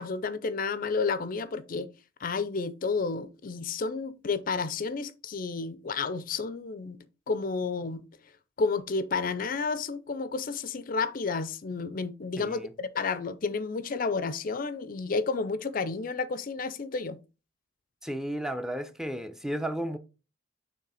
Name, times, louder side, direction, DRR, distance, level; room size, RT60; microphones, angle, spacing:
voice 1, 0.0-1.9 2.2-7.0 7.3-8.0 8.6-17.2, left 4 dB, 45° left, 0.4 m, -31 dB
voice 2, 12.4-12.7 18.0-20.0, right 1 dB, 5° right, 0.5 m, -33 dB
6.5 x 3.3 x 5.6 m
head